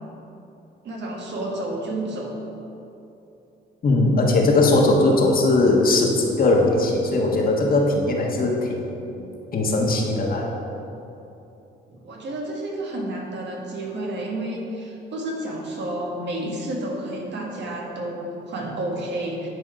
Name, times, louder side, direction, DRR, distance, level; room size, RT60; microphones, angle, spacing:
voice 1, 0.8-2.4 11.9-19.5, right 1 dB, 65° right, -1 dB, 1.6 m, -30 dB
voice 2, 3.8-8.9 9.5-10.5, left 2 dB, 45° left, 0 dB, 1.4 m, -19 dB
9.8 x 4.9 x 5.1 m, 2.9 s
cardioid pair, 90°, 20 cm